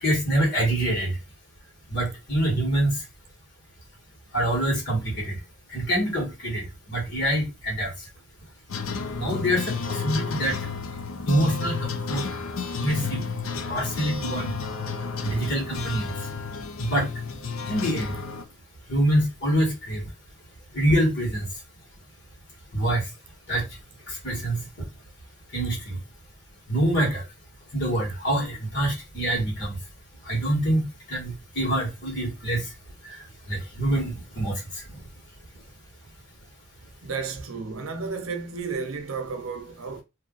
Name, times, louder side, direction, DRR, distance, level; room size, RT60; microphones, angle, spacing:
voice 1, 0.0-1.1 1.9-3.0 4.3-5.4 5.7-7.9 9.2-10.6 11.3-12.2 12.7-13.2 13.7-14.5 15.2-16.1 16.8-17.1 17.7-18.1 18.9-20.0 20.7-21.5 22.7-23.0 23.5-23.6 24.1-24.6 25.5-26.0 26.7-27.2 27.7-29.8 30.2-32.6 33.5-34.5, right 1 dB, 55° left, 1.5 m, -25 dB
sound 1, 8.7-18.4, left 5 dB, 70° left, 0.5 m, -32 dB
voice 2, 37.0-40.0, right 5 dB, 70° right, 0.6 m, -32 dB
2.6 x 2.5 x 3.7 m
head